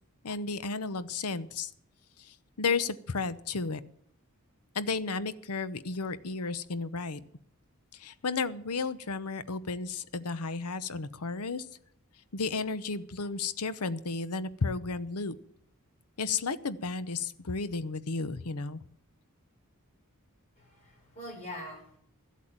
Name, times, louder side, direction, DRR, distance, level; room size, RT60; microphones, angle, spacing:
voice 1, 0.2-1.7 2.2-3.8 4.7-7.2 7.9-11.6 12.3-15.3 16.2-18.8, left 4 dB, 90° left, 14 dB, 0.9 m, -33 dB
voice 2, 20.6-22.0, left 1 dB, 30° left, -1 dB, 6.5 m, -43 dB
13.5 x 8.4 x 8.9 m, 0.66 s
head